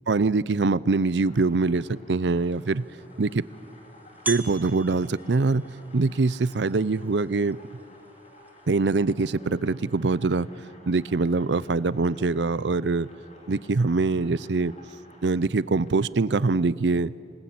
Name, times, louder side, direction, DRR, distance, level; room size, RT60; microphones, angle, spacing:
voice 1, 0.1-2.8 3.2-3.4 4.3-5.6 5.9-7.6 8.7-10.5 10.9-13.1 13.5-14.7 15.2-17.1, right 3 dB, 80° right, 19 dB, 0.6 m, -23 dB
sound 1, 1.0-16.2, left 1 dB, 40° left, 3.6 m, -54 dB
sound 2, 2.2-8.8, right 2 dB, 10° right, 1.1 m, -42 dB
Bass guitar, 9.3-15.5, right 4 dB, 70° left, 7.0 m, -54 dB
26.0 x 19.5 x 8.7 m, 2.6 s
head